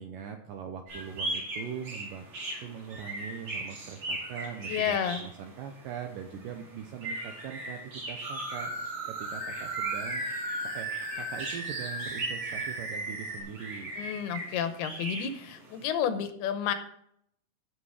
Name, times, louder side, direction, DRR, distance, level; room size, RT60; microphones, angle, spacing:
voice 1, 0.0-2.3 2.6-8.7 9.1-10.2 10.6-10.9 11.2-13.9, right 8 dB, 75° right, 5 dB, 2.0 m, -41 dB
sound 1, 0.9-15.9, right 2 dB, 50° right, 3.8 m, -39 dB
voice 2, 4.7-5.3 14.0-16.7, left 8 dB, 75° left, 9 dB, 2.7 m, -31 dB
sound 2, 8.2-13.4, right 2 dB, 30° right, 4.2 m, -36 dB
14.5 x 6.0 x 4.8 m, 0.70 s
omnidirectional pair, 4.8 m